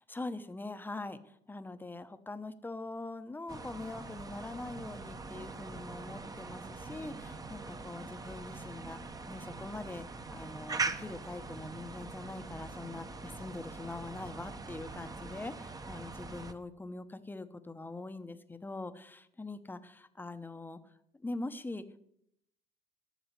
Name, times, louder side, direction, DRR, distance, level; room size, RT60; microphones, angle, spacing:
voice 1, 0.1-20.8 21.1-22.0, left 2 dB, 10° left, 10 dB, 0.9 m, -43 dB
sound 1, 3.5-16.5, right 3 dB, 20° right, 1.0 m, -42 dB
12.0 x 7.1 x 9.7 m, 0.74 s
cardioid pair, 130°, 18 cm